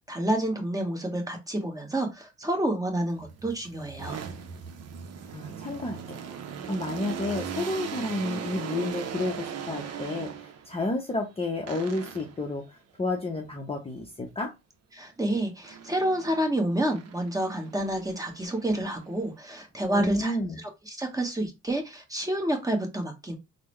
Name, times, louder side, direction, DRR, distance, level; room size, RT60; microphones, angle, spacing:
voice 1, 0.1-4.2 14.9-23.4, right 1 dB, 10° right, 3 dB, 1.0 m, -29 dB
sound 1, 3.1-10.8 11.7-12.5 15.6-16.5 16.9-19.3, right 7 dB, 55° right, 0.6 m, -39 dB
voice 2, 5.3-6.2 6.7-14.5 19.9-20.6, left 2 dB, 20° left, 2 dB, 0.6 m, -31 dB
3.6 x 2.0 x 3.1 m, 0.23 s
cardioid pair, 90°, 30 cm